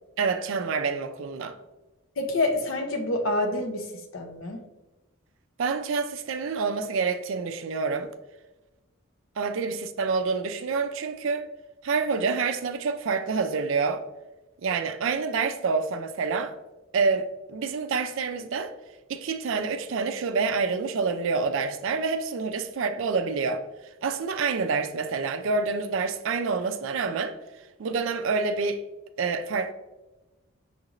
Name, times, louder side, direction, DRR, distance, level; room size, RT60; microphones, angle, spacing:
voice 1, 0.2-1.6 5.6-8.1 9.4-11.5 11.8-14.0 14.6-16.5 16.9-18.7 19.1-23.6 24.0-27.4 27.8-28.8 29.2-29.7, right 4 dB, 65° right, 0.4 m, -27 dB
voice 2, 2.2-3.9 4.1-4.6, left 2 dB, 70° left, 0.7 m, -27 dB
6.4 x 2.5 x 2.9 m
head